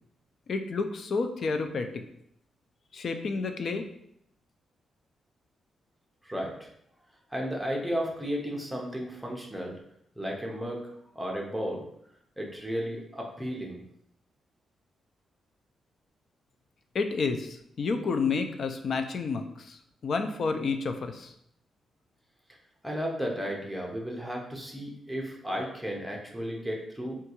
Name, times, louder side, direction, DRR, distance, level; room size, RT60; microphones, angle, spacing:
voice 1, 0.5-2.0 2.9-3.9 16.9-21.3, left 4 dB, 50° left, 7 dB, 0.3 m, -30 dB
voice 2, 6.2-6.7 7.3-9.7 10.2-11.8 12.4-13.8 22.8-27.2, equal, ahead, -1 dB, 0.6 m, -34 dB
3.6 x 2.3 x 2.9 m, 0.72 s
wide cardioid pair, 140°, 0 cm